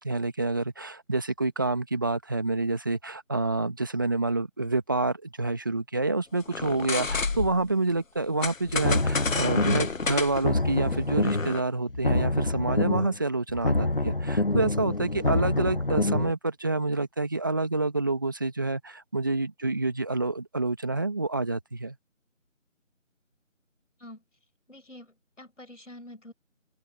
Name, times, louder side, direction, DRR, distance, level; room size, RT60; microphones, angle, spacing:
voice 1, 0.0-22.0, right 2 dB, 15° right, 1.8 m, -28 dB
sound 1, 6.5-7.7 8.4-11.6, left 4 dB, 85° left, 1.0 m, -31 dB
voice 2, 6.5-6.9 24.0-24.2 24.7-26.3, left 1 dB, 70° left, 6.9 m, -47 dB
sound 2, 8.7-10.0 10.3-11.6 11.9-13.2 13.5-16.3, left 2 dB, 45° left, 0.5 m, -26 dB
figure-of-eight pair, 170°, 38 cm